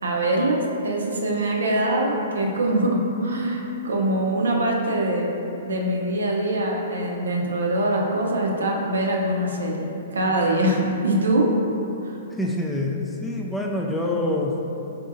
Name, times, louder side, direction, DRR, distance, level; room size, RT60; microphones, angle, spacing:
voice 1, 0.0-5.3 5.6-11.5 12.0-12.1, right 1 dB, 80° right, -1 dB, 0.5 m, -23 dB
voice 2, 12.4-14.6, left 1 dB, 10° left, -1 dB, 0.3 m, -26 dB
4.2 x 2.6 x 2.5 m, 2.8 s
hypercardioid pair, 120°, 0 cm